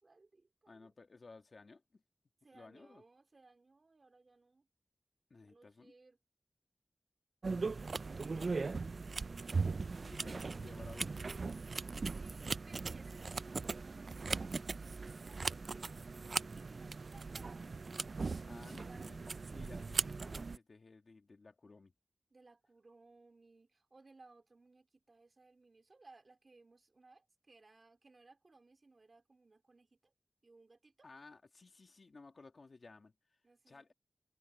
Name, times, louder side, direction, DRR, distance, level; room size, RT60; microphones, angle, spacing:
voice 1, 0.0-0.9 2.4-4.7 5.4-6.2 7.6-7.9 8.3-8.8 10.1-10.5 12.1-15.8 16.5-19.3 22.3-30.1 30.4-31.1 33.4-33.9, right 3 dB, 60° right, 3.9 m, -63 dB
voice 2, 0.7-2.0 2.5-3.0 5.3-5.9 8.0-8.1 8.4-8.7 9.0-9.2 10.0-11.4 18.4-19.3 19.5-21.9 31.0-33.4 33.7-33.9, left 3 dB, 70° left, 2.1 m, -57 dB
sound 1, 7.4-20.6, right 4 dB, 75° right, 0.4 m, -39 dB
wide cardioid pair, 70°, 0 cm